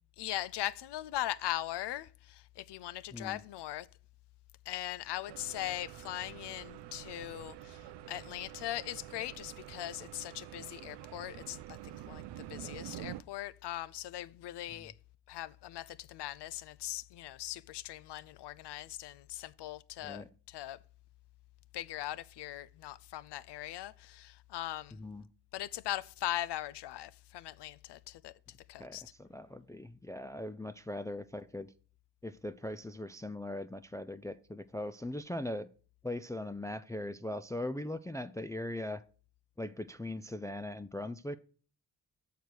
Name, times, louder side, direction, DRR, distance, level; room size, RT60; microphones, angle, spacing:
voice 1, 0.2-3.9 4.7-14.9 15.3-20.8 21.7-25.0 25.5-29.0, left 14 dB, 65° left, 0.6 m, -40 dB
sound 1, 5.3-13.2, right 15 dB, 65° right, 0.5 m, -47 dB
voice 2, 24.9-25.2 28.8-31.7 32.2-35.7 36.0-39.0 39.6-41.4, left 1 dB, 10° left, 0.4 m, -40 dB
6.6 x 4.6 x 6.3 m
supercardioid pair, 40°, 44 cm